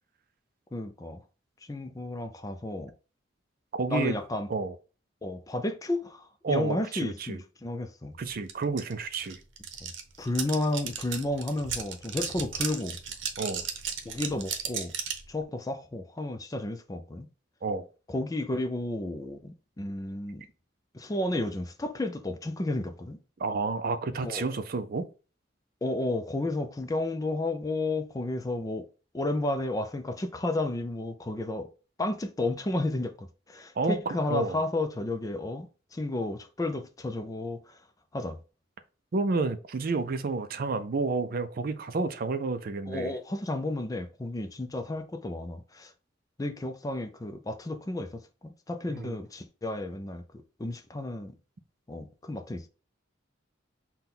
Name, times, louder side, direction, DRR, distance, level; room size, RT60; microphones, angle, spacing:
voice 1, 0.7-1.2 1.7-2.9 3.9-4.5 5.2-8.1 9.8-9.9 10.2-13.0 14.0-14.9 15.3-17.3 18.1-20.4 20.9-23.2 24.2-24.5 25.8-28.9 29.1-31.7 32.0-35.7 35.9-37.8 38.1-38.4 42.9-45.9 46.4-50.2 50.6-51.3 51.9-52.7, left 2 dB, 20° left, 0.4 m, -32 dB
voice 2, 3.7-4.2 4.5-4.8 6.4-7.4 8.2-9.4 13.4-13.6 17.6-17.8 23.4-25.1 33.8-34.6 39.1-43.1 48.9-49.2, right 3 dB, 50° right, 0.4 m, -30 dB
sound 1, 8.5-8.6 8.8-15.3, right 7 dB, 85° right, 0.7 m, -35 dB
5.9 x 2.2 x 3.7 m
head